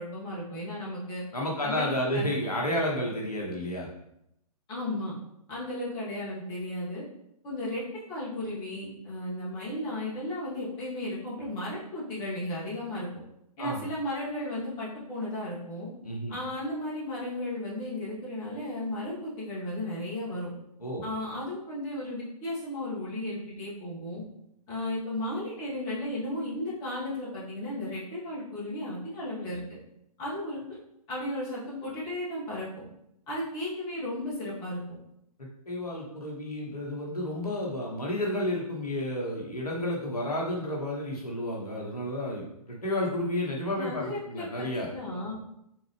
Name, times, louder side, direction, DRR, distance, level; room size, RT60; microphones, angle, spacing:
voice 1, 0.0-1.2 1.6-2.3 4.7-5.1 5.5-7.0 7.4-13.1 13.6-15.9 16.3-20.5 21.0-24.2 24.7-29.8 30.2-30.6 31.1-32.8 33.3-34.8 43.7-45.4, left 1 dB, 25° left, -7 dB, 1.7 m, -34 dB
voice 2, 1.3-3.9 13.6-13.9 16.0-16.3 20.8-21.0 35.4-44.9, left 1 dB, 75° left, -2 dB, 1.2 m, -31 dB
3.8 x 3.8 x 3.3 m, 0.79 s
figure-of-eight pair, 125°, 20 cm